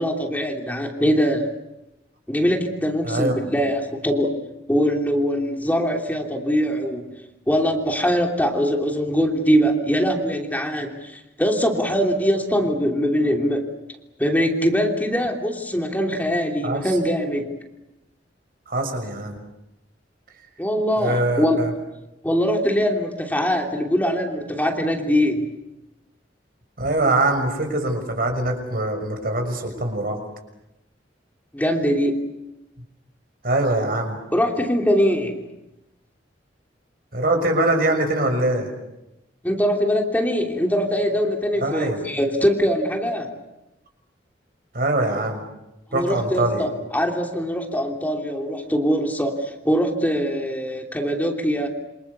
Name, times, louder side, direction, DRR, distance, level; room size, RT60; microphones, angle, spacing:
voice 1, 0.0-1.5 2.3-4.3 4.7-7.1 7.5-13.7 14.2-17.5 20.6-21.6 22.2-25.5 31.5-32.2 34.3-35.5 39.4-43.3 45.9-51.7, equal, 10° left, 1 dB, 3.1 m, -22 dB
voice 2, 3.0-3.6 16.6-16.9 18.7-19.4 21.0-21.7 26.8-30.2 33.4-34.2 37.1-38.7 41.6-42.0 44.7-45.4 45.9-46.6, right 2 dB, 55° right, 5 dB, 6.5 m, -23 dB
28.5 x 26.5 x 7.0 m, 0.94 s
head